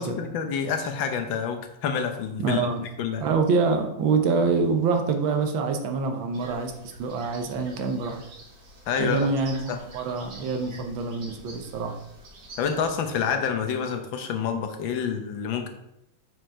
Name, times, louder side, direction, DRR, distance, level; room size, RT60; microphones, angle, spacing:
voice 1, 0.0-3.2 8.9-9.3 9.7-9.8 12.6-15.7, left 7 dB, 80° left, 6 dB, 1.6 m, -28 dB
voice 2, 2.4-2.8 3.2-6.7 7.0-8.2 9.0-9.6 9.9-11.9, right 4 dB, 85° right, 5 dB, 1.7 m, -25 dB
sound 1, 6.3-13.2, right 1 dB, 50° right, 1.8 m, -47 dB
6.3 x 4.8 x 4.4 m, 0.81 s
omnidirectional pair, 2.1 m